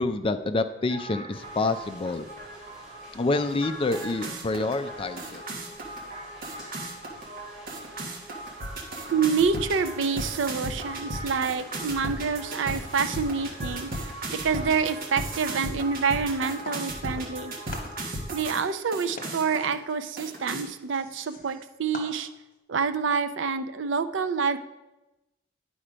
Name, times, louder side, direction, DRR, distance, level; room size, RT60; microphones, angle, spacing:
voice 1, 0.0-2.3 3.1-5.4, left 2 dB, 30° left, 10 dB, 0.4 m, -27 dB
sound 1, 0.9-18.6 18.9-19.7 20.2-20.6, right 1 dB, 50° right, 1.4 m, -36 dB
sound 2, 1.3-15.2, right 1 dB, 5° right, 3.2 m, -52 dB
voice 2, 9.1-13.9 14.4-17.5 18.3-22.3 22.7-24.6, right 5 dB, 75° right, 9 dB, 0.5 m, -27 dB
sound 3, 16.6-17.4 17.7-22.6, left 2 dB, 45° left, 1.3 m, -45 dB
10.0 x 4.3 x 5.0 m, 1.0 s
head